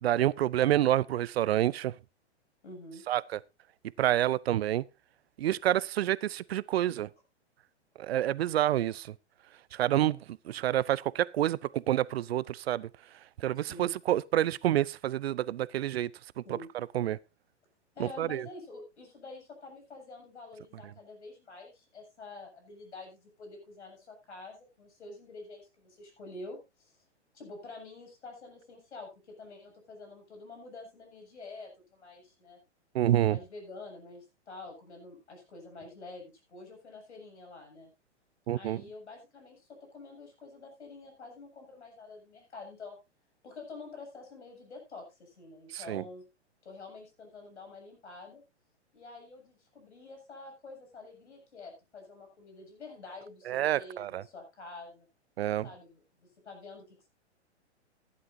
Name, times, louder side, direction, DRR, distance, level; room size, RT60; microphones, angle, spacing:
voice 1, 0.0-1.9 3.1-3.4 4.0-4.8 5.4-7.1 8.0-9.1 9.7-10.2 10.5-12.9 13.4-16.1 16.9-17.2 18.0-18.4 32.9-33.4 38.5-38.8 45.7-46.0 53.5-54.2 55.4-55.7, right 12 dB, 60° right, 0.6 m, -28 dB
voice 2, 2.6-3.0 13.6-13.9 16.4-16.7 18.0-27.0 27.3-32.6 33.2-37.9 38.5-43.0 43.4-46.2 46.6-48.4 48.9-55.1 55.6-57.1, left 3 dB, 75° left, 7.3 m, -48 dB
16.0 x 11.0 x 2.7 m
hypercardioid pair, 115°, 35 cm